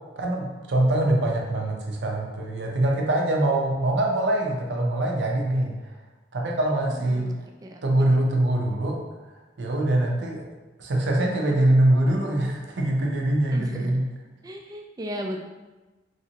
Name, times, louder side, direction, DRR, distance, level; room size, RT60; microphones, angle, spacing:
voice 1, 0.2-5.8 6.3-7.3 7.8-9.0 9.6-10.5 10.8-14.0, right 1 dB, 70° right, 0 dB, 0.5 m, -23 dB
voice 2, 6.9-7.4 7.6-8.2 13.5-14.0 14.4-15.4, equal, 20° right, 1 dB, 0.3 m, -36 dB
3.2 x 2.8 x 2.7 m, 1.2 s
head